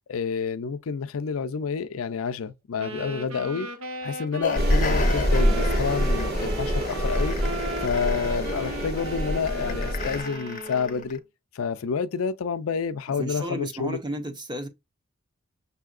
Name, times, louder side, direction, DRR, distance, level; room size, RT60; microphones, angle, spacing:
voice 1, 0.1-3.7 4.0-7.4 7.8-11.2 11.5-14.0, left 6 dB, 80° left, 0.5 m, -29 dB
sound 1, 2.8-11.2, right 1 dB, 80° right, 0.8 m, -37 dB
sound 2, 4.4-11.2, left 4 dB, 40° left, 0.6 m, -36 dB
sound 3, 4.5-10.2, equal, 45° right, 1.4 m, -25 dB
voice 2, 13.1-14.7, right 1 dB, 20° right, 0.7 m, -33 dB
6.6 x 2.7 x 2.4 m
head